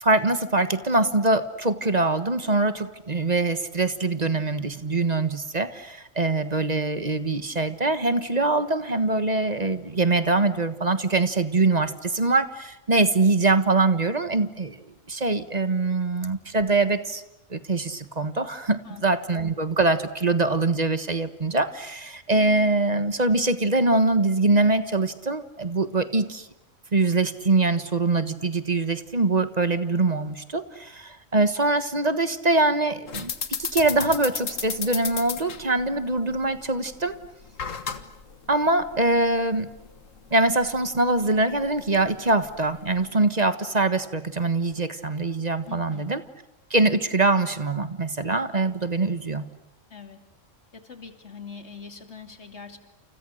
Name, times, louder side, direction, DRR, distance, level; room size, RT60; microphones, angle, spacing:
voice 1, 0.0-14.8 15.1-17.2 17.5-26.5 26.9-33.3 33.6-37.1 38.5-39.7 40.3-46.2 46.7-49.5, right 2 dB, 35° right, 11 dB, 1.5 m, -23 dB
sound 1, 33.1-43.1, left 6 dB, 80° left, 1.8 m, -36 dB
voice 2, 45.6-46.1 49.9-50.2 50.7-52.8, left 5 dB, 60° left, 6 dB, 2.9 m, -42 dB
30.0 x 29.0 x 6.5 m, 0.85 s
omnidirectional pair, 1.3 m